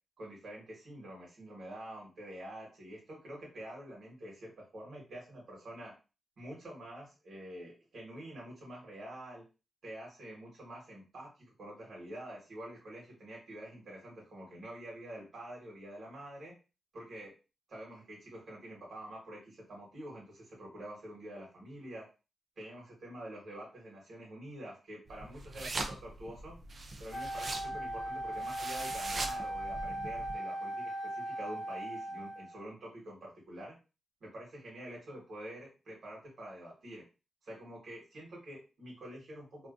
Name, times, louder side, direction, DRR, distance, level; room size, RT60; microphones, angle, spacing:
voice 1, 0.2-5.9 6.4-9.4 9.8-16.6 16.9-17.3 17.7-22.0 22.6-26.6 27.0-33.8 34.2-37.0 37.4-39.7, right 1 dB, 55° right, -3 dB, 1.3 m, -47 dB
sound 1, 25.1-30.3, right 2 dB, 35° right, 0.3 m, -42 dB
Wind instrument woodwind instrument, 27.1-32.6, right 1 dB, 35° left, 0.5 m, -38 dB
2.6 x 2.3 x 2.4 m, 0.31 s
wide cardioid pair, 170°, 0 cm